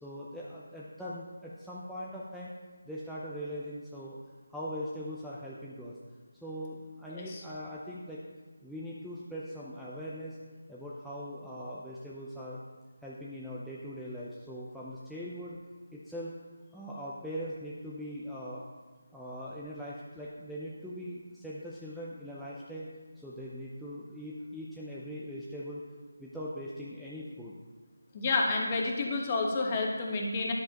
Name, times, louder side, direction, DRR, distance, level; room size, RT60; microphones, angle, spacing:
voice 1, 0.0-2.5 2.8-4.2 4.5-6.0 6.4-8.2 8.6-10.4 10.7-12.6 13.0-15.6 15.9-16.3 16.7-18.6 19.1-22.9 23.2-25.8 26.2-27.5, equal, ahead, -8 dB, 0.6 m, -41 dB
voice 2, 28.1-30.5, left 3 dB, 25° left, 0 dB, 1.2 m, -30 dB
10.0 x 7.5 x 2.9 m, 1.4 s
figure-of-eight pair, 160°, 0 cm